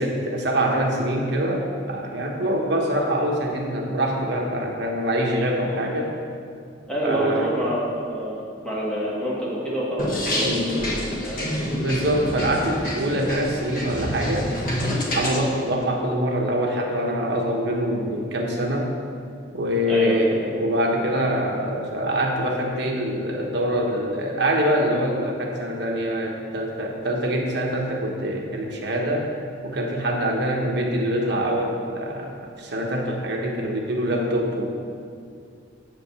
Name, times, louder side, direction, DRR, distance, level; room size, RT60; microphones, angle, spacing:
voice 1, 0.0-6.1 7.0-7.6 10.4-11.0 11.3-14.6 15.1-18.9 19.5-29.3 29.6-34.7, equal, 55° right, 0 dB, 1.1 m, -24 dB
voice 2, 6.9-10.9 11.2-11.7 19.9-20.3, right 1 dB, 5° left, -8 dB, 1.9 m, -27 dB
sound 1, 10.0-15.4, left 1 dB, 45° left, 1.3 m, -28 dB
7.6 x 5.1 x 7.1 m, 2.3 s
head